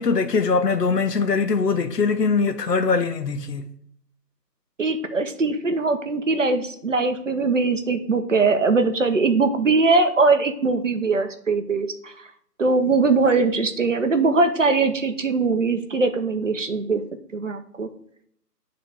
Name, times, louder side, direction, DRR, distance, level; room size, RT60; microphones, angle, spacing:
voice 1, 0.0-3.7, left 4 dB, 70° left, 0.9 m, -22 dB
voice 2, 4.8-12.1 12.6-17.0 17.3-17.9, right 3 dB, 50° right, 0.6 m, -21 dB
8.8 x 3.8 x 3.4 m
figure-of-eight pair, 165°, 50 cm